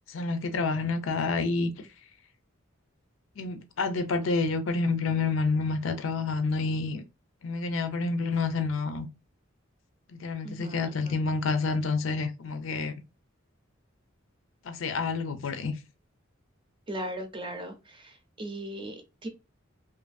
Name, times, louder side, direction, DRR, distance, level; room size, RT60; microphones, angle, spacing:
voice 1, 0.1-1.7 3.4-7.0 7.4-9.1 10.1-12.9 14.6-15.8, left 4 dB, 75° left, 0.5 m, -28 dB
voice 2, 10.4-11.2 16.9-19.3, right 1 dB, 25° right, 0.6 m, -38 dB
2.6 x 2.6 x 2.3 m
head